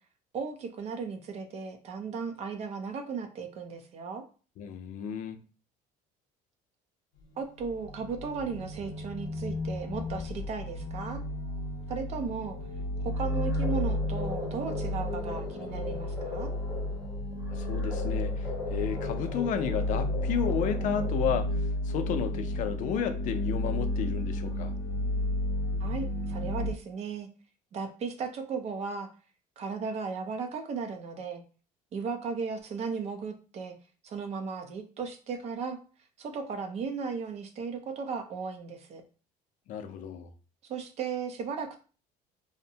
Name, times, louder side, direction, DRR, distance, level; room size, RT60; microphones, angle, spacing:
voice 1, 0.3-4.2 7.4-11.2 11.9-12.6 13.0-16.5 25.8-27.3 27.7-29.1 29.6-31.4 31.9-33.7 34.0-35.8 36.2-39.0 40.7-41.8, right 5 dB, 40° right, 0.5 m, -36 dB
voice 2, 4.6-5.4 17.5-24.7 39.7-40.3, left 8 dB, 50° left, 0.4 m, -32 dB
sound 1, 7.2-26.7, left 1 dB, 85° left, 0.7 m, -32 dB
sound 2, 13.1-21.6, left 3 dB, ahead, 0.7 m, -40 dB
2.6 x 2.1 x 2.7 m
cardioid pair, 155°, 16 cm